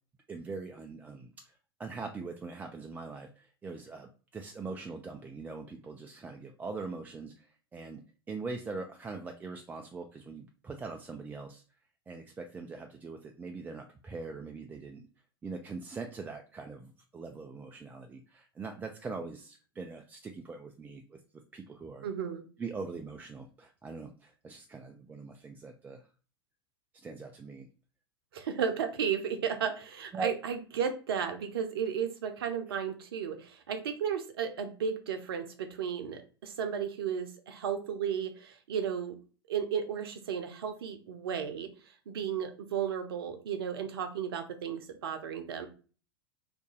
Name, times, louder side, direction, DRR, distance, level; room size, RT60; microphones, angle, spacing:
voice 1, 0.3-8.0 8.3-11.6 12.1-15.1 15.4-22.1 22.6-26.1 26.9-27.7 30.1-30.3, right 4 dB, 15° right, 3 dB, 0.3 m, -42 dB
voice 2, 22.0-22.4 28.3-39.1 39.5-41.7 42.1-45.7, right 7 dB, 65° right, 7 dB, 0.7 m, -34 dB
3.0 x 2.6 x 3.6 m, 0.37 s
figure-of-eight pair, 85°, 14 cm